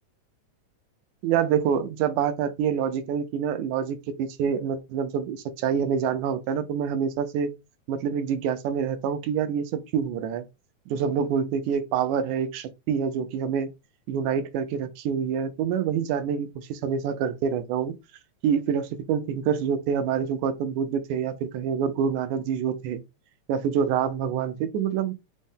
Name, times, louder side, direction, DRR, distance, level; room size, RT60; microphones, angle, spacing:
voice 1, 1.2-7.5 7.9-10.5 10.9-13.7 14.1-17.9 18.4-23.0 23.5-25.2, right 7 dB, 85° right, 2.0 m, -26 dB
5.3 x 2.1 x 3.5 m
omnidirectional pair, 3.5 m